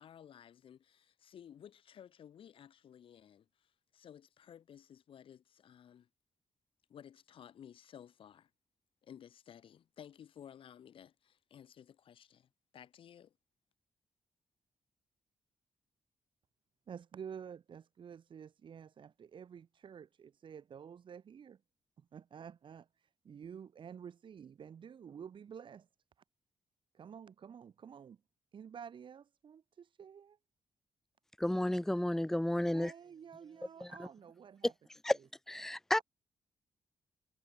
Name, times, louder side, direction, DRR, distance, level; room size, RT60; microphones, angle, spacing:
voice 1, 0.0-6.1 6.9-8.5 9.0-13.3, left 9 dB, 75° left, 7.4 m, -56 dB
voice 2, 16.9-21.6 22.0-25.9 26.9-28.2 28.5-30.4 32.7-34.7, right 7 dB, 65° right, 7.3 m, -50 dB
voice 3, 31.4-32.9 33.8-34.1 35.0-35.2 35.5-36.0, left 1 dB, 5° left, 0.7 m, -32 dB
cardioid pair, 80°, 9 cm